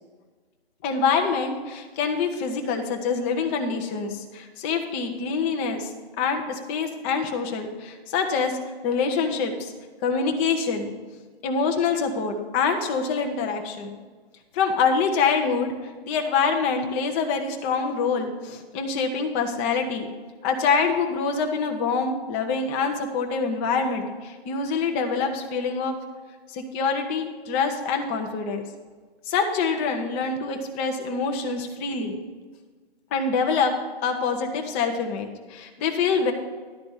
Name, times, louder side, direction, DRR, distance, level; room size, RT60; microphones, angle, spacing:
voice 1, 0.8-5.9 6.2-8.6 8.8-9.7 10.0-10.9 11.4-13.9 14.5-15.7 16.0-20.1 20.4-26.0 26.5-28.6 29.2-32.2 33.1-33.7 34.0-36.3, left 5 dB, 10° left, 4 dB, 0.5 m, -25 dB
11.5 x 4.2 x 7.8 m, 1.4 s
hypercardioid pair, 145°, 32 cm